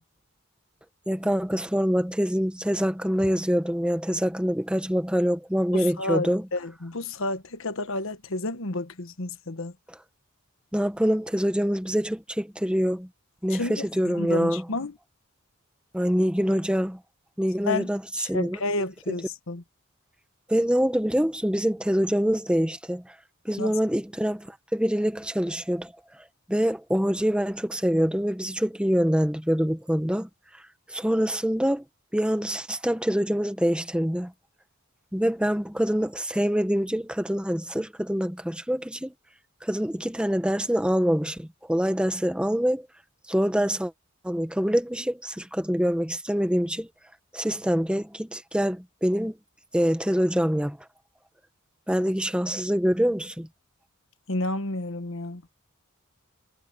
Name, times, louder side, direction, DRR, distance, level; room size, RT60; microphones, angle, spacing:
voice 1, 1.1-6.4 10.7-13.1 13.4-14.6 15.9-17.0 17.4-18.0 18.3-18.6 20.5-23.0 23.4-25.9 26.5-30.3 30.9-31.8 32.1-34.3 35.1-39.1 39.6-42.9 43.3-43.9 44.2-46.9 47.3-49.3 49.7-50.8 51.9-53.5, equal, 5° right, 1.1 m, -25 dB
voice 2, 5.7-9.7 13.5-13.9 14.1-14.9 17.7-17.9 18.2-19.6 23.6-23.8 54.3-55.4, left 2 dB, 65° left, 1.4 m, -31 dB
head